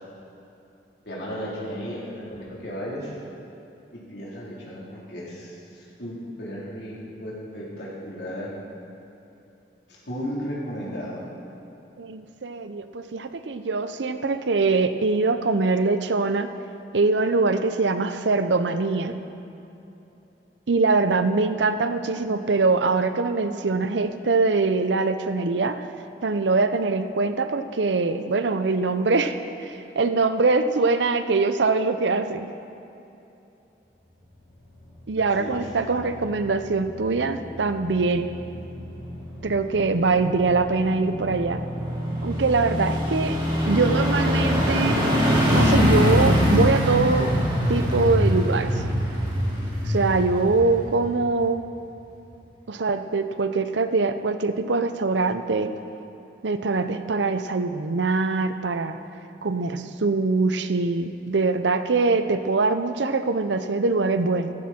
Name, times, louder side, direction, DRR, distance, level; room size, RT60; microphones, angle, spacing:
voice 1, 1.1-3.1 3.9-8.6 9.9-11.2 35.2-36.0, equal, 75° left, -6 dB, 3.7 m, -35 dB
voice 2, 12.0-16.5 16.9-19.1 20.7-25.8 26.2-32.5 35.1-38.3 39.4-41.6 42.2-43.4 43.6-45.0 45.5-47.3 47.7-48.8 49.9-51.6 52.7-55.7 56.4-59.0 59.4-64.5, right 3 dB, 85° right, 10 dB, 0.7 m, -23 dB
sound 1, 34.9-51.4 51.8-51.9, equal, 25° right, 3.2 m, -25 dB
15.0 x 13.5 x 4.4 m, 2.9 s
head